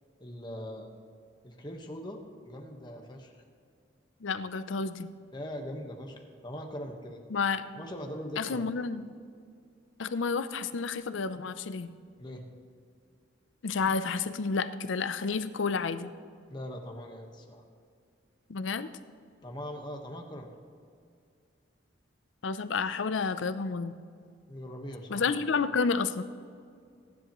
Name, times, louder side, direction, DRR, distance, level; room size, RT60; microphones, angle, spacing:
voice 1, 0.2-0.9 1.4-3.4 5.3-7.2 7.8-8.6 12.2-12.4 16.5-17.6 19.4-20.5 24.5-25.4, equal, 25° left, 2 dB, 1.3 m, -41 dB
voice 2, 4.2-5.1 7.3-7.6 8.4-9.1 10.0-11.9 13.6-16.1 18.5-18.9 22.4-23.9 25.1-26.2, left 5 dB, 80° left, 12 dB, 0.6 m, -30 dB
23.0 x 10.5 x 3.1 m, 2.3 s
head